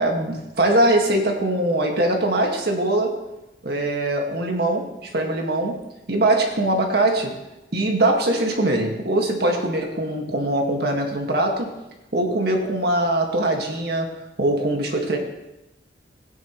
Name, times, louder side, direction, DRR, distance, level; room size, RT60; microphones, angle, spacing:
voice 1, 0.0-3.2 3.6-7.4 7.7-11.7 12.1-15.2, right 1 dB, 65° right, 2 dB, 1.8 m, -22 dB
16.5 x 9.8 x 3.1 m, 0.95 s
head